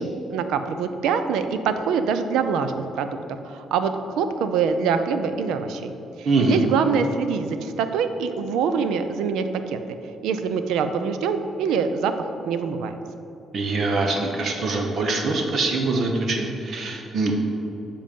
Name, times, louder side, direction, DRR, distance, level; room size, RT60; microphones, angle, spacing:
voice 1, 0.0-3.1 3.5-5.9 6.2-9.8 10.2-12.1 12.4-12.9, right 6 dB, 90° right, 9 dB, 0.5 m, -24 dB
voice 2, 6.3-6.6 13.5-17.4, right 3 dB, 60° right, 3 dB, 1.0 m, -23 dB
7.5 x 7.1 x 5.3 m, 2.9 s
cardioid pair, 90°, 0 cm